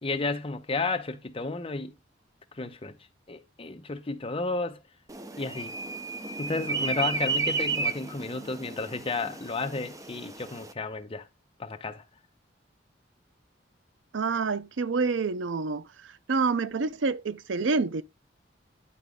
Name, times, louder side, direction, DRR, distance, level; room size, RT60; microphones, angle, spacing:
voice 1, 0.0-1.9 2.5-3.0 3.3-4.8 5.4-5.8 6.4-11.3 11.6-12.0, left 3 dB, 30° left, 0.8 m, -32 dB
sound 1, 5.1-10.7, right 4 dB, 20° right, 0.8 m, -33 dB
voice 2, 14.1-18.0, right 4 dB, 85° right, 0.6 m, -28 dB
10.0 x 5.0 x 3.6 m
head